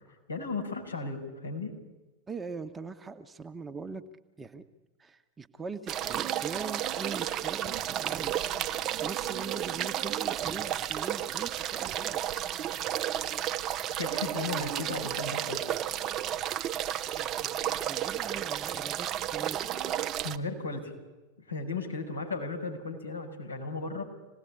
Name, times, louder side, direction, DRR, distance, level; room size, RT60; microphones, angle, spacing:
voice 1, 0.3-1.7 13.6-15.6 20.2-20.9 21.5-24.0, left 3 dB, 80° left, 1 dB, 6.3 m, -35 dB
voice 2, 2.3-4.0 4.4-4.6 5.0-8.4 9.0-12.2 17.1-19.9, right 4 dB, 15° right, 7 dB, 1.5 m, -41 dB
sound 1, 5.9-20.4, right 11 dB, 30° right, 1.0 m, -32 dB
26.5 x 19.0 x 10.0 m, 1.1 s
figure-of-eight pair, 90°, 0 cm